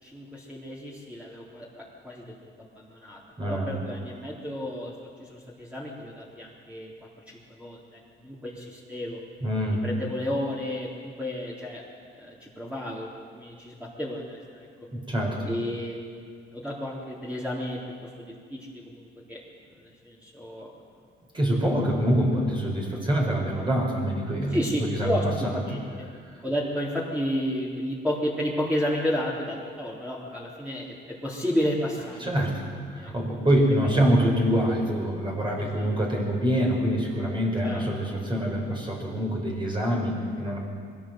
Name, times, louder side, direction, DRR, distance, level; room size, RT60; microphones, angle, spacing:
voice 1, 0.0-6.9 7.3-9.2 9.8-11.8 12.1-14.7 15.4-19.4 19.8-20.7 24.5-26.1 26.4-32.4 32.9-33.1 35.6-35.9 37.6-37.8, equal, 5° right, -6 dB, 3.9 m, -32 dB
voice 2, 3.4-3.8 9.4-9.8 14.9-15.5 21.3-25.8 26.1-26.2 32.2-40.6, equal, 25° right, -2 dB, 5.2 m, -25 dB
22.5 x 16.5 x 7.8 m, 2.1 s
cardioid pair, 90°, 20 cm